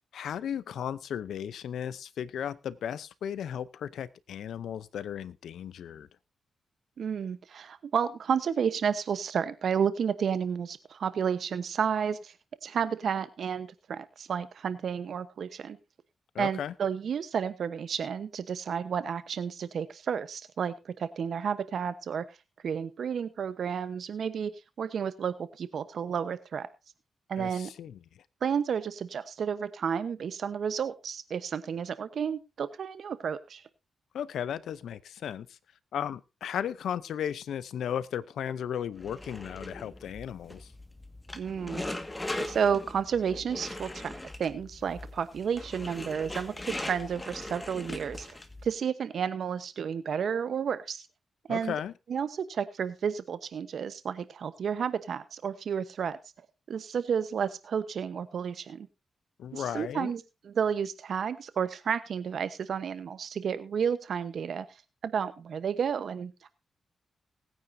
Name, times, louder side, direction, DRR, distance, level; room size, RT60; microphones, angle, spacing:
voice 1, 0.1-6.1 16.3-16.7 27.4-28.0 34.1-35.5 35.9-40.7 51.5-51.9 59.4-60.1, left 9 dB, 85° left, 0.7 m, -35 dB
voice 2, 7.0-12.3 12.6-15.8 16.4-22.2 22.6-24.5 24.8-26.7 27.3-27.7 28.4-33.6 41.4-41.8 42.4-48.4 48.6-51.1 51.5-51.7 52.1-56.2 56.7-58.9 59.5-64.7 65.0-66.5, right 7 dB, 75° right, 1.0 m, -31 dB
sound 1, 39.0-48.7, left 1 dB, 20° left, 1.8 m, -40 dB
20.0 x 9.4 x 2.7 m
cardioid pair, 60°, 0 cm